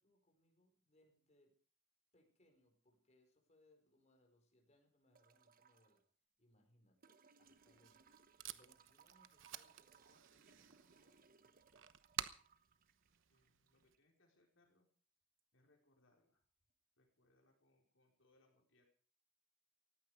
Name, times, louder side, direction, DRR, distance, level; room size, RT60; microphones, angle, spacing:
voice 1, 0.0-1.6 2.1-6.0 6.4-8.1 8.4-11.3, left 1 dB, 35° left, 2 dB, 5.0 m, -75 dB
sound 1, 5.1-6.0 7.0-14.0 15.4-15.5, right 5 dB, 45° right, 1.1 m, -69 dB
Packing tape duct tape, 7.5-13.9, right 10 dB, 70° right, 1.0 m, -52 dB
voice 2, 13.3-14.9 15.5-16.4 17.0-18.8, left 2 dB, 75° left, 1 dB, 4.5 m, -76 dB
18.5 x 15.5 x 5.0 m, 0.43 s
head